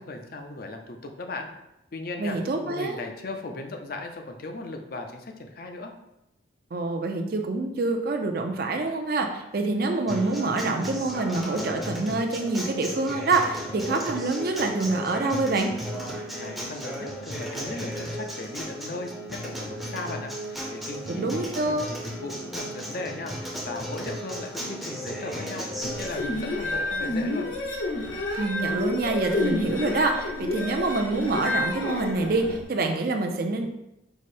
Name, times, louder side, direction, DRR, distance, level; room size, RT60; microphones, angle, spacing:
voice 1, 0.0-1.5 1.9-5.9 16.4-27.5, left 2 dB, 50° left, 4 dB, 0.5 m, -37 dB
voice 2, 2.2-3.0 6.7-15.7 21.1-21.9 28.3-33.7, right 3 dB, 50° right, 4 dB, 0.4 m, -26 dB
Acoustic guitar, 10.1-26.1, equal, ahead, 0.6 m, -35 dB
sound 1, 25.8-32.6, left 2 dB, 75° left, 0.8 m, -29 dB
4.8 x 2.1 x 4.2 m, 0.89 s
head